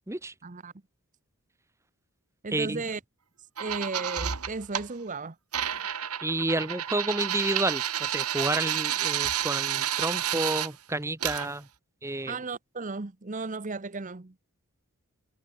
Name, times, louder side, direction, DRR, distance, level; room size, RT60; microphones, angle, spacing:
voice 1, 0.4-0.7 2.4-3.0 3.6-5.4 12.3-14.3, right 3 dB, 35° right, 0.8 m, -35 dB
voice 2, 2.5-2.8 6.2-11.7 12.0-12.4, right 2 dB, 10° right, 1.0 m, -30 dB
sound 1, 3.6-4.9 5.5-10.7 11.2-11.5, right 10 dB, 90° right, 2.0 m, -30 dB
head